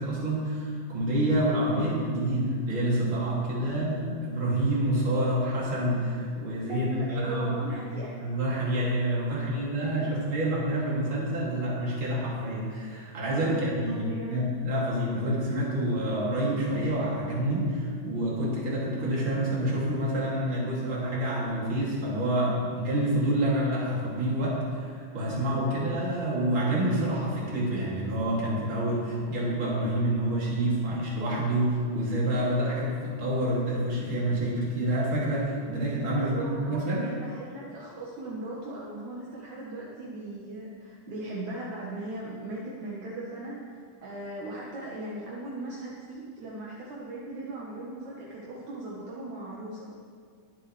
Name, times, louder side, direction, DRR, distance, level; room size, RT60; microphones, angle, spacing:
voice 1, 0.0-7.8 8.2-37.0, right 1 dB, 40° right, -6 dB, 3.3 m, -28 dB
voice 2, 3.5-3.9 6.7-8.2 9.3-10.2 13.3-13.6 13.9-14.4 25.7-25.8 36.2-49.9, right 2 dB, 70° right, -5 dB, 2.6 m, -39 dB
21.5 x 7.8 x 3.3 m, 2.1 s
omnidirectional pair, 3.7 m